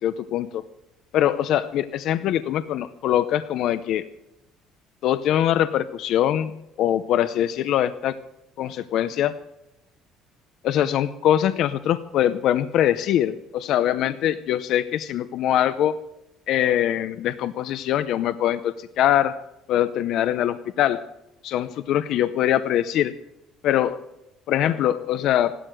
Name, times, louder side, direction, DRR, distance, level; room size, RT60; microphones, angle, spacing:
voice 1, 0.0-0.6 1.1-4.0 5.0-6.5 6.8-8.1 8.6-9.3 10.6-15.9 16.5-19.4 19.7-21.0 21.4-23.1 23.6-24.0 24.5-25.5, left 11 dB, 60° left, 12 dB, 0.6 m, -23 dB
15.5 x 12.5 x 6.3 m, 0.89 s
cardioid pair, 145°, 0 cm